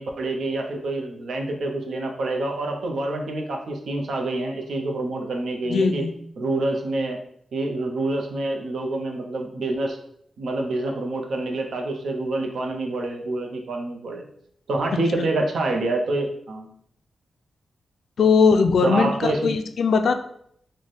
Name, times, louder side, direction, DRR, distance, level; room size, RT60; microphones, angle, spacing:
voice 1, 0.0-6.1 6.4-7.2 7.5-10.0 10.4-14.2 14.7-16.7 18.8-19.5, right 2 dB, 75° right, 3 dB, 0.6 m, -27 dB
voice 2, 5.7-6.1 15.2-15.3 18.2-20.1, left 5 dB, 70° left, 8 dB, 0.3 m, -19 dB
3.2 x 2.1 x 4.0 m, 0.67 s
wide cardioid pair, 130°, 0 cm